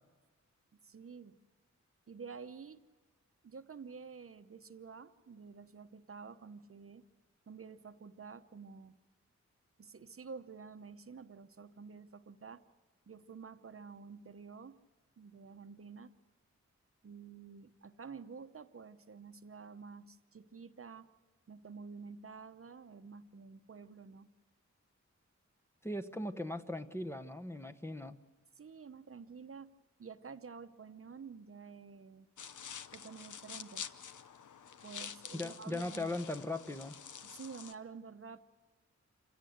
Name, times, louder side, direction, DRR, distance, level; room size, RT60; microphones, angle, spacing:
voice 1, 0.7-1.4 2.1-2.8 3.4-7.0 7.5-9.0 9.8-12.6 13.1-14.8 15.2-16.1 17.0-21.1 21.5-24.3 28.6-29.7 30.0-32.3 32.9-33.9 34.8-36.2 37.2-38.4, right 5 dB, 50° right, 10 dB, 0.9 m, -50 dB
voice 2, 25.8-28.2 35.3-36.9, left 1 dB, 10° left, 6 dB, 1.0 m, -39 dB
sound 1, 32.4-37.7, left 7 dB, 90° left, 0.9 m, -48 dB
27.5 x 17.0 x 7.9 m, 1.3 s
wide cardioid pair, 110°, 30 cm